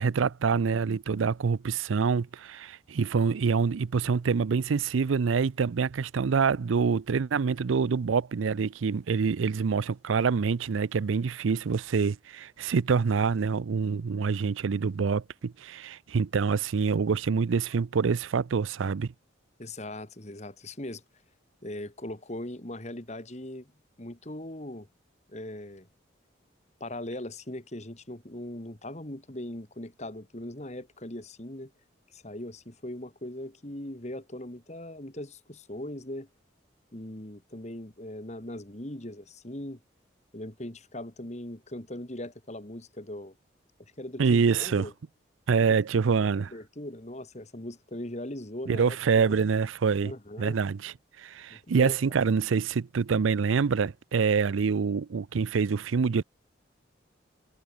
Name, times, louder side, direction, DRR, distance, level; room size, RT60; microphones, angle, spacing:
voice 1, 0.0-19.1 44.2-44.9 45.5-46.5 48.7-50.1 50.4-56.2, right 5 dB, 85° right, 0.5 m, -26 dB
voice 2, 19.6-21.0 21.6-23.7 24.0-24.9 25.3-25.9 26.8-31.7 32.1-36.3 36.9-39.8 40.3-43.3 43.8-44.9 45.6-45.8 46.3-49.0 49.2-49.4 50.0-50.6 51.5-52.0, left 1 dB, 35° left, 2.1 m, -40 dB
head